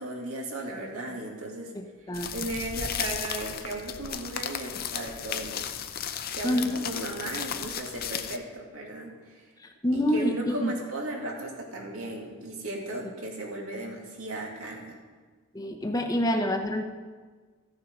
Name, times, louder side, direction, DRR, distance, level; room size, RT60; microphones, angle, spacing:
voice 1, 0.0-1.7 2.0-5.7 6.0-9.5 9.9-15.0, right 1 dB, 80° right, -1 dB, 2.2 m, -36 dB
voice 2, 1.7-2.3 6.4-6.8 9.6-10.7 15.5-16.8, equal, 15° left, 4 dB, 0.8 m, -27 dB
sound 1, 2.1-8.4, left 8 dB, 45° left, 0.6 m, -35 dB
14.5 x 7.0 x 5.2 m, 1.4 s
head